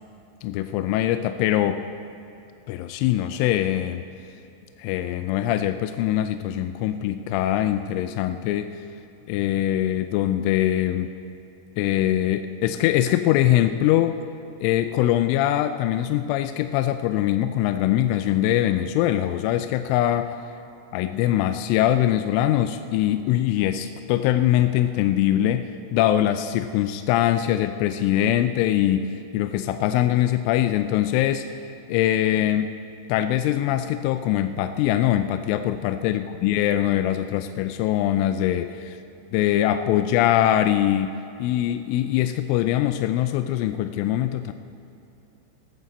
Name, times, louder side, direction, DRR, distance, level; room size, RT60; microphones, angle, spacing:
voice 1, 0.4-1.8 2.7-4.0 4.8-8.8 9.3-11.1 11.8-14.2 14.6-20.4 20.9-31.5 31.9-32.8 33.1-39.0 39.3-44.5, left 12 dB, 85° left, 9 dB, 2.9 m, -22 dB
18.0 x 14.0 x 4.1 m, 2.7 s
omnidirectional pair, 5.9 m